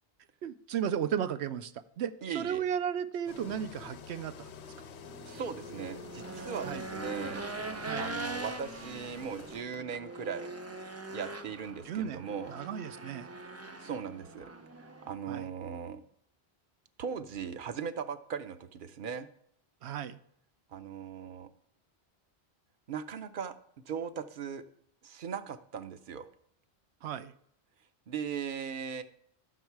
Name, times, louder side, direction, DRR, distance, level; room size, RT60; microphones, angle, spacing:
voice 1, 0.4-4.5 6.6-6.8 7.9-8.1 11.8-12.2 12.5-13.3 15.3-15.5 19.8-20.2 27.0-27.3, right 8 dB, 80° right, 13 dB, 0.9 m, -34 dB
voice 2, 2.2-2.6 5.3-7.4 8.0-10.5 11.1-12.5 13.8-14.5 14.8-16.0 17.0-19.3 20.7-21.5 22.9-23.5 23.9-24.6 25.0-26.3 28.1-29.0, right 7 dB, 55° right, 11 dB, 0.8 m, -38 dB
Engine, 3.3-9.6, left 7 dB, 85° left, 1.0 m, -49 dB
sound 1, 3.5-8.4, left 3 dB, 60° left, 0.8 m, -55 dB
Race car auto racing / Engine, 5.0-15.1, right 2 dB, 25° right, 0.3 m, -42 dB
11.0 x 6.4 x 4.6 m, 0.68 s
omnidirectional pair, 1.1 m